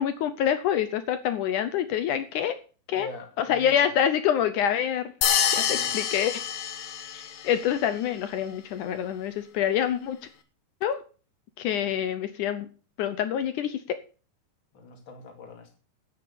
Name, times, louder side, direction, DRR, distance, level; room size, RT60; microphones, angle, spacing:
voice 1, 0.0-2.6 2.9-3.1 3.4-5.0 5.5-6.3 7.1-10.2 10.8-11.0 11.6-12.7 13.0-14.0, left 9 dB, 75° left, 1.8 m, -26 dB
voice 2, 2.9-3.9 5.6-5.9 14.7-15.8, left 3 dB, 35° left, 2.6 m, -43 dB
sound 1, 5.2-7.5, left 9 dB, 60° left, 2.2 m, -26 dB
10.5 x 9.0 x 7.1 m
omnidirectional pair, 4.5 m